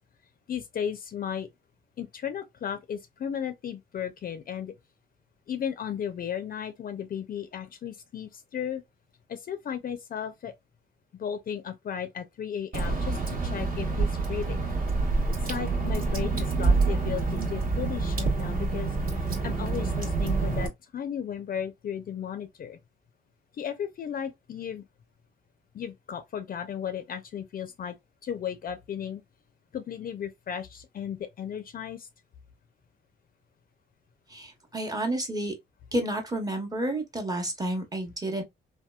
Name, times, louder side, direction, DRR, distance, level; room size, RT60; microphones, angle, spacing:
voice 1, 0.5-1.5 2.0-4.7 5.5-8.8 9.3-10.5 11.2-14.7 15.5-18.9 19.4-22.8 23.5-24.8 25.7-28.0 28.2-29.2 29.7-32.1, left 8 dB, 45° left, 0.4 m, -35 dB
Water / Drip, 12.7-20.7, right 3 dB, 45° right, 1.1 m, -27 dB
voice 2, 34.3-35.5 35.9-38.4, right 1 dB, 20° right, 0.9 m, -30 dB
2.8 x 2.2 x 2.2 m
cardioid pair, 90°, 20 cm